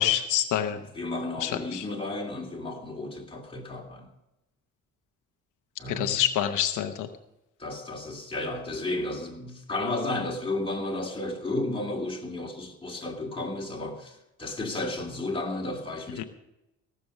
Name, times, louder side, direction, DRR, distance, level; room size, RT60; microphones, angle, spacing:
voice 1, 0.0-0.8 1.4-1.9 5.9-7.1 16.2-16.3, left 11 dB, 85° left, 7 dB, 0.9 m, -26 dB
voice 2, 0.8-4.1 5.8-6.2 7.6-16.2, left 2 dB, 15° left, -1 dB, 2.7 m, -33 dB
17.5 x 6.9 x 6.4 m, 0.90 s
cardioid pair, 90°, 30 cm